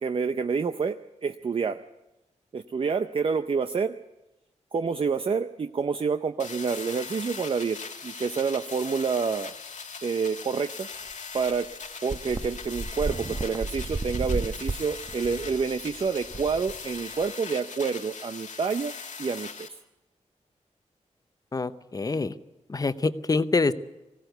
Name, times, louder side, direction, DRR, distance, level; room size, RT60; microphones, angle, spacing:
voice 1, 0.0-1.8 2.5-3.9 4.7-7.8 8.0-9.5 10.0-10.9 11.3-11.7 12.0-18.9 19.2-19.8, right 5 dB, 45° right, 9 dB, 0.6 m, -28 dB
sound 1, 6.4-19.7, left 5 dB, 80° left, 1.9 m, -40 dB
sound 2, 11.1-11.2 11.5-11.6 12.1-17.3, right 3 dB, 25° right, 1.1 m, -33 dB
voice 2, 21.5-22.3 22.7-23.7, left 3 dB, 30° left, 13 dB, 0.8 m, -25 dB
20.0 x 16.5 x 8.0 m, 0.99 s
wide cardioid pair, 130°, 12 cm